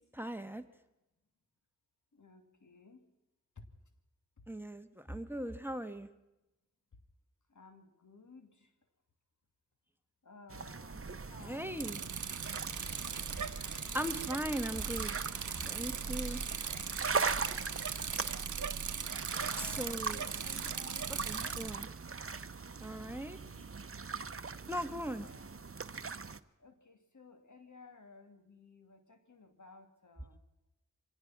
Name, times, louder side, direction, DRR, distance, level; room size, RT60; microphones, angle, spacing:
voice 1, 0.1-0.6 4.5-6.1 11.4-12.0 13.3-13.5 13.9-16.4 19.6-20.2 21.1-21.9 22.8-23.4 24.7-25.3, equal, 5° right, 9 dB, 1.5 m, -39 dB
voice 2, 2.1-3.1 3.6-3.7 7.5-8.7 10.2-12.2 19.4-21.8 23.0-23.7 25.1-25.8 26.3-30.4, left 3 dB, 80° left, 6 dB, 2.7 m, -56 dB
sound 1, 10.5-26.4, right 4 dB, 50° right, 0.9 m, -41 dB
Bicycle, 11.8-21.8, right 7 dB, 90° right, 0.8 m, -39 dB
sound 2, 12.4-18.3, left 1 dB, 40° left, 4.2 m, -52 dB
25.0 x 18.0 x 6.0 m, 0.95 s
wide cardioid pair, 50°, 29 cm